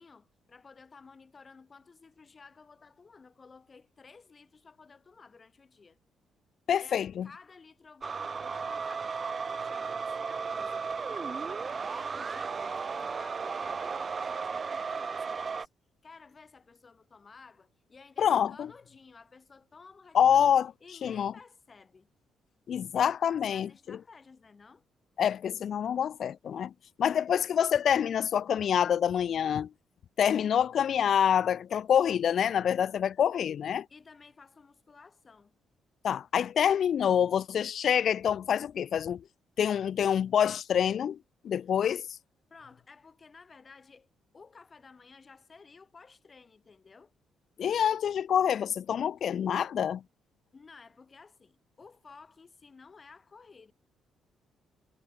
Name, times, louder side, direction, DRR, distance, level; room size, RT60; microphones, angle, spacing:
voice 1, 0.0-6.0 6.7-15.7 16.0-20.5 20.8-22.1 22.9-24.8 33.9-35.5 42.5-44.1 44.3-47.1 50.5-53.7, left 4 dB, 35° left, 6.8 m, -54 dB
voice 2, 6.7-7.3 18.2-18.7 20.1-20.7 21.0-21.3 22.7-24.0 25.2-26.7 27.0-29.7 30.2-33.9 36.0-39.2 39.6-41.2 41.4-42.1 47.6-50.0, left 8 dB, 60° left, 0.3 m, -26 dB
sound 1, 8.0-15.6, right 5 dB, 40° right, 1.2 m, -35 dB
cardioid pair, 90°, 0 cm